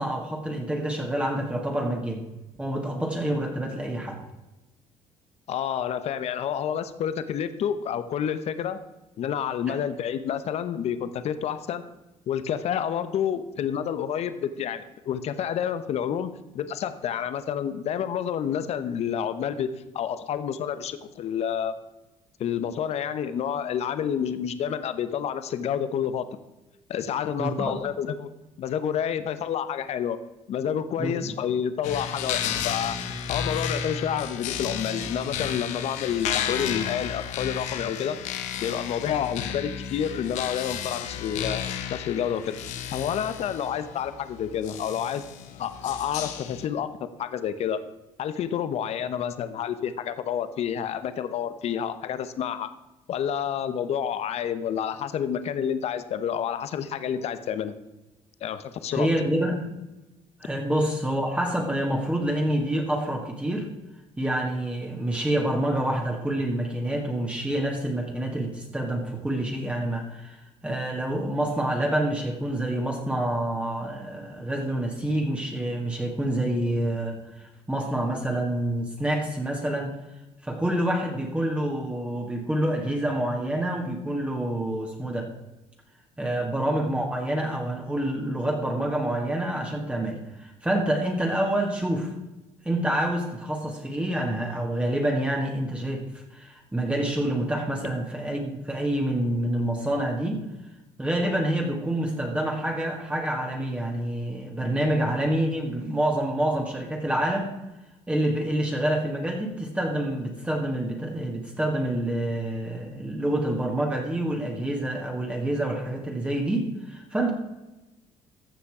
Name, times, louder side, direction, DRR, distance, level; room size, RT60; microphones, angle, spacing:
voice 1, 0.0-2.3 2.6-4.2 9.7-9.8 27.4-27.8 31.0-31.1 58.9-59.7 60.4-63.7 64.2-80.0 80.4-85.3 86.2-92.1 92.6-100.4 101.0-107.5 108.1-117.3, right 1 dB, 10° right, 1 dB, 1.9 m, -27 dB
voice 2, 5.5-8.8 9.2-11.9 12.3-19.7 19.9-21.7 22.4-26.2 26.9-28.3 28.6-30.2 30.5-33.0 33.3-38.2 38.6-41.6 41.9-42.6 42.9-45.2 45.6-47.8 48.2-52.7 53.1-57.8 58.4-59.1, left 8 dB, 60° left, 12 dB, 0.9 m, -29 dB
sound 1, 31.8-46.7, left 8 dB, 80° left, 1.0 m, -33 dB
15.0 x 5.8 x 4.9 m, 1.0 s
cardioid pair, 90°, 12 cm